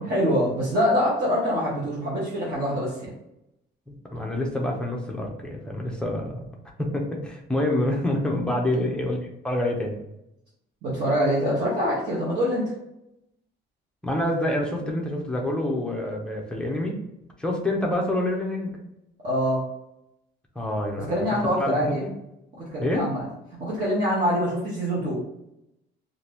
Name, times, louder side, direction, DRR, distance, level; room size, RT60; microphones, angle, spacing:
voice 1, 0.1-3.1 8.7-8.8 10.8-12.6 19.2-19.6 21.1-22.0 22.5-23.3 23.6-25.2, equal, 50° right, -7 dB, 0.9 m, -24 dB
voice 2, 3.9-6.4 6.8-9.2 9.4-10.0 14.0-17.0 17.4-18.7 20.6-21.3 21.6-22.1 22.8-23.1, left 1 dB, 5° left, -1 dB, 0.4 m, -27 dB
2.7 x 2.5 x 3.4 m, 0.84 s
cardioid pair, 175°, 20 cm